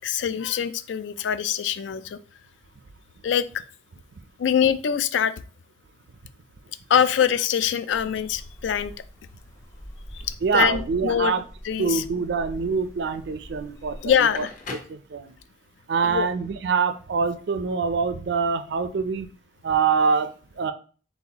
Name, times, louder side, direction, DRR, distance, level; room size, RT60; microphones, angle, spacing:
voice 1, 0.0-2.2 3.2-3.6 4.4-5.3 6.9-8.9 10.1-11.3 11.6-12.0 14.0-14.5 16.0-16.3, left 8 dB, 75° left, 14 dB, 0.3 m, -24 dB
sound 1, 7.9-14.8, equal, 15° left, 0.7 m, -43 dB
voice 2, 10.4-11.4 11.8-14.5 14.9-15.3 15.9-19.3 19.6-20.7, right 5 dB, 65° right, 11 dB, 0.4 m, -25 dB
Crackle, 14.1-15.7, left 3 dB, 45° left, 0.9 m, -41 dB
4.1 x 3.8 x 2.8 m, 0.40 s
head